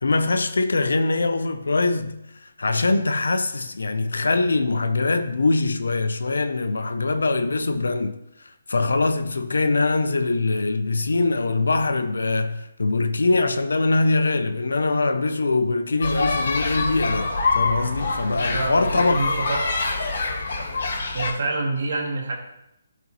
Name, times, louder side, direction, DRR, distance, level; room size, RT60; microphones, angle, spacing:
voice 1, 0.0-19.2, left 3 dB, 85° left, 0.5 m, -23 dB
sound 1, 16.0-21.3, left 3 dB, 60° left, 1.6 m, -25 dB
voice 2, 18.3-19.7 21.1-22.4, right 2 dB, 65° right, 1.9 m, -27 dB
12.0 x 4.1 x 3.0 m
hypercardioid pair, 160°, 0 cm